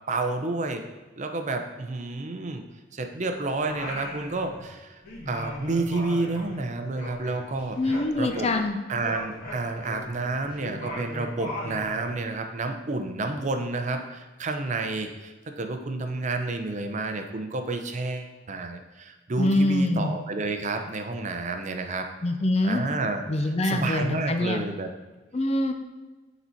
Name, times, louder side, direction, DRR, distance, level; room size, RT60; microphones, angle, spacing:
voice 1, 0.1-0.9 1.2-2.6 2.9-4.9 5.3-8.5 8.9-22.1 22.6-24.9, right 3 dB, 40° right, 6 dB, 0.6 m, -30 dB
Singing, 3.6-4.8 5.0-8.7 9.0-12.2, left 1 dB, 55° left, 2.0 m, -38 dB
voice 2, 7.8-8.8 19.4-20.1 22.2-22.8 23.3-24.6 25.3-25.7, left 1 dB, 35° left, 6 dB, 0.5 m, -24 dB
6.9 x 4.1 x 4.4 m, 1.2 s
head